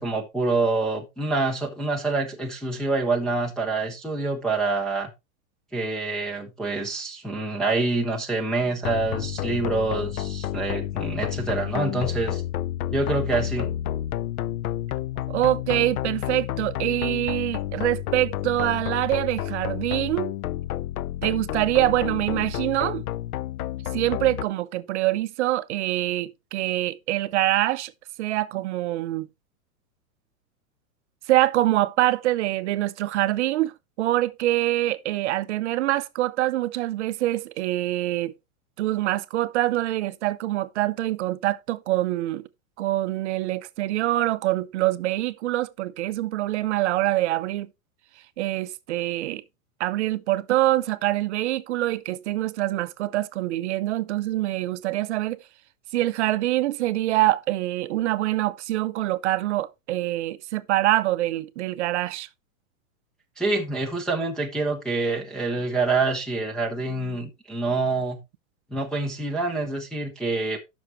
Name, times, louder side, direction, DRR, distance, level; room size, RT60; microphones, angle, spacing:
voice 1, 0.0-5.1 5.7-12.4 12.9-13.7 63.4-68.2 68.7-70.6, right 3 dB, ahead, 0.5 m, -26 dB
sound 1, 8.8-24.5, left 12 dB, 80° left, 0.7 m, -30 dB
voice 2, 15.3-20.3 21.2-23.0 23.9-27.9 28.2-29.3 31.3-33.7 34.0-38.3 38.8-42.4 42.8-47.7 48.4-49.4 49.8-55.4 55.9-62.3, right 16 dB, 50° right, 0.6 m, -25 dB
12.5 x 6.1 x 3.0 m
supercardioid pair, 155°, 44 cm